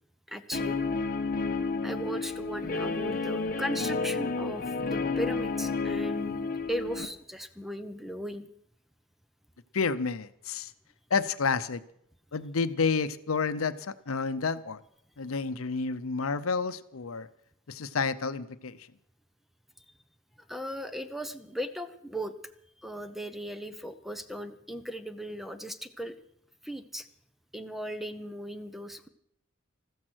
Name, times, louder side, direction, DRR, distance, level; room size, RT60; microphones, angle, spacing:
voice 1, 0.3-0.8 1.8-8.5 20.5-22.3 22.8-26.2 26.6-27.1 27.5-29.1, equal, ahead, 11 dB, 0.8 m, -37 dB
Guitar, 0.5-7.1, left 4 dB, 45° left, 1.2 m, -31 dB
voice 2, 9.7-10.7 11.1-11.8 12.3-14.8 15.2-17.3 17.7-18.9, left 5 dB, 75° left, 13 dB, 0.7 m, -30 dB
14.0 x 14.0 x 6.3 m, 0.71 s
head